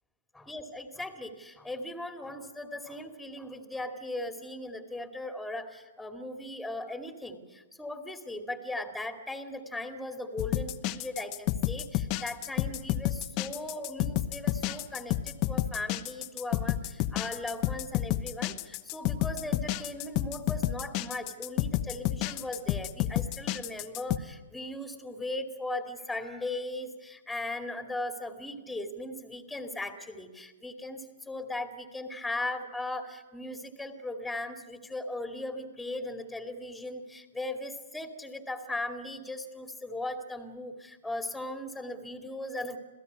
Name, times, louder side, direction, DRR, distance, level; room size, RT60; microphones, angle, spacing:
voice 1, 0.3-42.8, left 1 dB, ahead, 5 dB, 2.4 m, -38 dB
sound 1, 10.4-24.2, left 14 dB, 35° left, 1.0 m, -30 dB
27.0 x 16.5 x 9.6 m, 1.2 s
hypercardioid pair, 130°, 0 cm